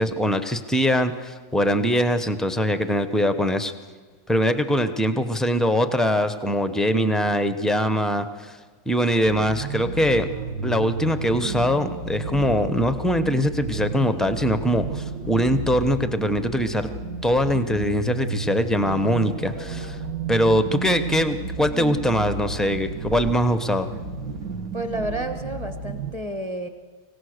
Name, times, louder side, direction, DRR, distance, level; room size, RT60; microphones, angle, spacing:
voice 1, 0.0-3.7 4.3-8.6 8.9-10.3 10.6-16.9 17.2-20.0 20.3-23.9, equal, ahead, 10 dB, 0.3 m, -22 dB
sound 1, 9.2-26.1, right 4 dB, 65° right, 1.6 m, -32 dB
voice 2, 24.7-26.7, right 1 dB, 20° right, 7 dB, 1.3 m, -30 dB
25.0 x 16.5 x 6.5 m, 1.5 s
omnidirectional pair, 1.6 m